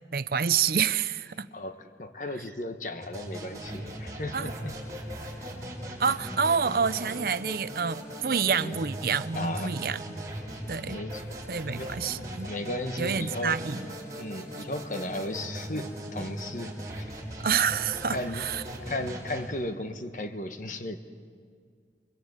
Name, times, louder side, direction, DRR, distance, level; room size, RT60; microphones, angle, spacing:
voice 1, 0.1-1.5 4.3-4.5 6.0-10.0 10.7-11.0 11.5-12.5 13.0-13.9 17.4-18.6, right 6 dB, 55° right, 14 dB, 0.6 m, -28 dB
voice 2, 1.5-4.7 8.6-8.8 9.3-9.8 10.5-10.6 10.9-11.3 11.7-11.9 12.4-13.6 14.2-17.0 18.1-18.4 18.9-21.0, left 1 dB, 45° left, 8 dB, 1.3 m, -35 dB
sound 1, 3.0-19.5, right 1 dB, 20° right, 6.2 m, -39 dB
29.0 x 22.5 x 8.1 m, 2.2 s
head